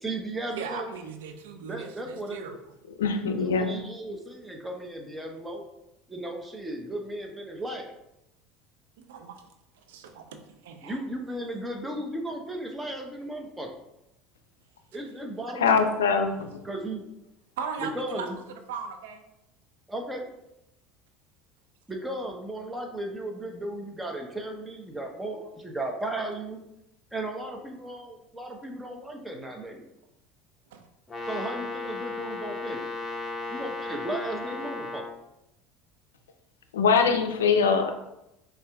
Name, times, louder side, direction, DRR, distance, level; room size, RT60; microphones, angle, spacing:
voice 1, 0.0-0.9 1.6-2.5 3.4-5.6 6.1-7.9 10.8-13.7 14.9-15.9 16.6-17.1 17.8-18.4 19.9-20.2 21.9-26.6 27.1-29.8 31.3-32.9 33.5-35.0, right 1 dB, 10° right, 2 dB, 0.8 m, -35 dB
voice 2, 0.6-2.5 9.0-9.4 9.9-11.0 17.6-19.3 30.7-30.9, right 6 dB, 80° right, 6 dB, 0.4 m, -38 dB
voice 3, 3.0-3.8 15.6-16.5 36.7-37.9, left 5 dB, 90° left, 6 dB, 0.4 m, -23 dB
Brass instrument, 31.1-35.2, left 3 dB, 15° left, 0.9 m, -35 dB
5.3 x 2.5 x 2.3 m, 0.87 s
hypercardioid pair, 80°, 0 cm